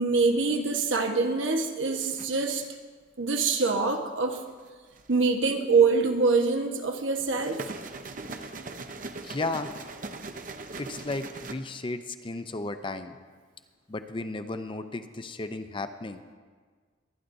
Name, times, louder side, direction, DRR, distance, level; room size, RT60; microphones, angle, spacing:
voice 1, 0.0-2.7 3.2-4.4 5.1-7.7, right 4 dB, 85° right, 4 dB, 1.1 m, -25 dB
sound 1, 2.0-2.7 4.6-5.3 7.2-11.5, right 3 dB, 45° right, 0.7 m, -40 dB
voice 2, 9.2-9.7 10.8-13.2 13.9-16.2, left 2 dB, 25° left, 9 dB, 0.5 m, -34 dB
23.0 x 10.0 x 2.7 m, 1.5 s
head